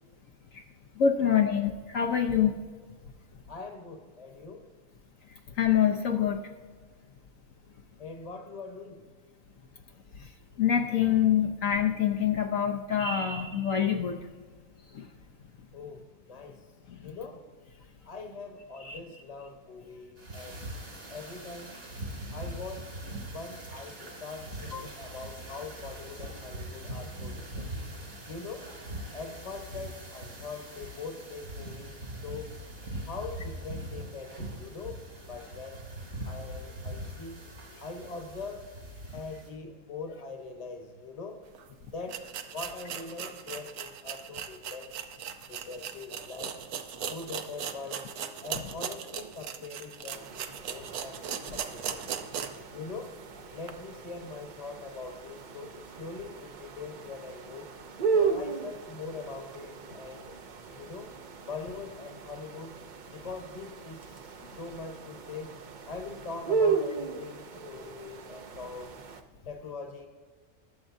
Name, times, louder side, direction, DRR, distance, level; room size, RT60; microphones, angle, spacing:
voice 1, 1.0-2.5 5.6-6.4 10.6-14.2 14.9-15.1 16.9-17.0 18.8-19.0 24.7-24.9, left 8 dB, 65° left, 3 dB, 1.1 m, -25 dB
voice 2, 3.5-4.6 8.0-9.1 15.7-16.6 17.0-17.4 18.0-20.6 21.1-21.7 22.3-22.9 23.3-27.7 28.3-28.7 29.1-32.5 33.1-35.0 35.3-35.8 36.2-37.4 37.8-38.7 39.1-41.4 41.9-44.9 45.5-46.5 47.1-48.0 48.4-52.2 52.7-53.1 53.5-57.7 58.1-60.4 60.7-61.1 61.5-62.7 63.1-65.5 65.9-69.0 69.4-70.1, left 4 dB, 30° left, 4 dB, 1.1 m, -42 dB
sound 1, 20.2-39.5, right 1 dB, 70° right, 2.9 m, -42 dB
sound 2, 41.5-41.6 42.1-52.7 53.1-53.2 53.6-53.7, right 8 dB, 90° right, 1.2 m, -38 dB
sound 3, 50.1-69.2, right 5 dB, 55° right, 0.5 m, -36 dB
21.0 x 7.4 x 2.6 m, 1.5 s
omnidirectional pair, 1.5 m